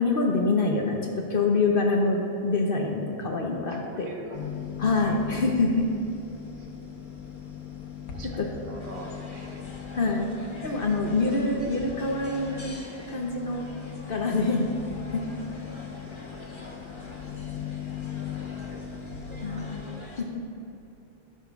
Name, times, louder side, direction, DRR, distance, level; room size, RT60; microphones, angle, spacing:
voice 1, 0.0-4.1 4.8-5.9 8.4-8.5 9.9-10.3 10.6-12.7 13.1-13.6 14.1-14.6 15.1-15.3 19.4-19.8 20.2-20.3, left 3 dB, 50° left, 1 dB, 0.7 m, -25 dB
voice 2, 3.7-4.5 6.6-7.0 8.1-9.6 18.7-19.8, right 2 dB, 55° right, 0 dB, 1.4 m, -45 dB
sound 1, 4.3-19.8, left 8 dB, 70° left, 1.3 m, -39 dB
sound 2, 8.8-20.2, left 1 dB, 25° left, 0.8 m, -46 dB
15.5 x 7.3 x 2.3 m, 2.7 s
omnidirectional pair, 1.7 m